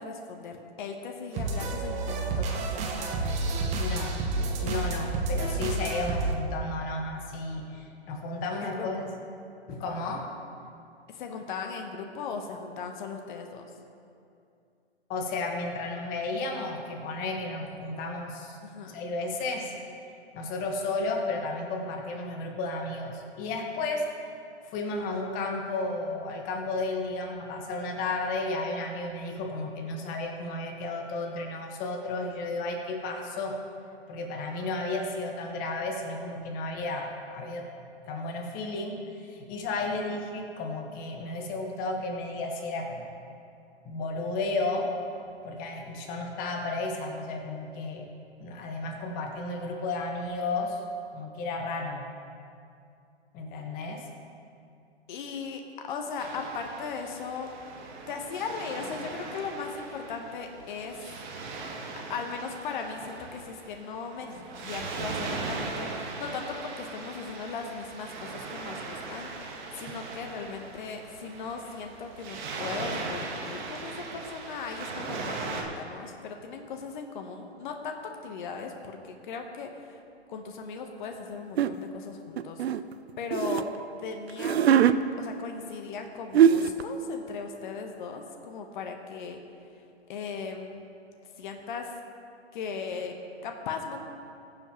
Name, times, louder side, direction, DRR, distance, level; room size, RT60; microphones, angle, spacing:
voice 1, 0.0-3.4 8.6-9.1 11.1-13.7 18.6-19.0 39.8-40.2 55.1-57.5 58.1-61.1 62.1-80.0 80.3-82.6 83.2-83.6 84.0-84.7 85.2-89.4 90.1-90.8 91.4-91.9 92.5-93.2 93.4-94.0, left 5 dB, 45° left, 4 dB, 1.1 m, -38 dB
sound 1, 1.3-6.3, right 3 dB, 20° right, 1.0 m, -30 dB
voice 2, 3.8-4.2 4.6-9.1 9.7-10.3 15.1-18.6 18.9-19.7 20.3-24.1 24.6-33.6 34.1-37.7 38.1-43.1 43.8-44.9 45.4-48.1 48.4-50.8 51.1-52.1 53.3-54.1, left 2 dB, 25° left, 2 dB, 1.5 m, -33 dB
Waves surf, 56.2-75.6, right 3 dB, 45° right, 1.8 m, -39 dB
sound 2, 81.6-81.8 82.4-83.6 84.3-85.0 86.0-86.1 86.3-86.8, right 9 dB, 65° right, 0.6 m, -21 dB
21.5 x 7.4 x 3.1 m, 2.5 s
hypercardioid pair, 135°, 33 cm